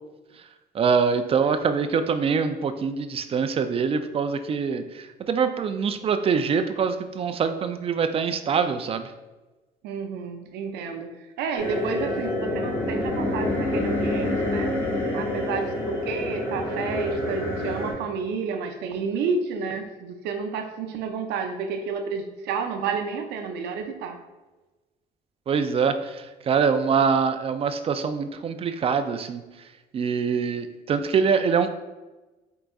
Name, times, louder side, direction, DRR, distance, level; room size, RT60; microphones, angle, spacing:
voice 1, 0.7-9.1 25.5-29.4 29.9-31.7, right 6 dB, 35° right, 9 dB, 0.3 m, -24 dB
voice 2, 9.8-14.8 15.1-24.2, right 5 dB, 80° right, 6 dB, 0.6 m, -30 dB
sound 1, 11.6-17.9, left 1 dB, 15° left, 1.2 m, -27 dB
4.5 x 3.8 x 2.3 m, 1.1 s
cardioid pair, 110°, 17 cm